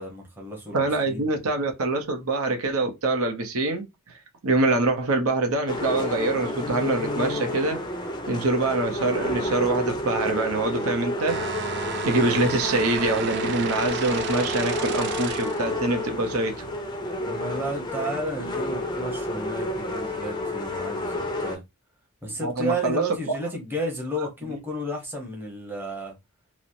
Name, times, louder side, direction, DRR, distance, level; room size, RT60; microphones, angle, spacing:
voice 1, 0.0-1.3 17.1-21.6 22.2-26.2, right 1 dB, 10° right, 0.8 m, -32 dB
voice 2, 0.7-3.8 4.4-7.8 8.3-11.4 12.0-16.7 22.4-23.4, right 2 dB, 70° right, 0.7 m, -25 dB
sound 1, 5.7-21.6, left 1 dB, 20° left, 0.5 m, -30 dB
sound 2, 11.3-15.7, right 6 dB, 50° right, 0.4 m, -33 dB
3.0 x 2.0 x 2.5 m
head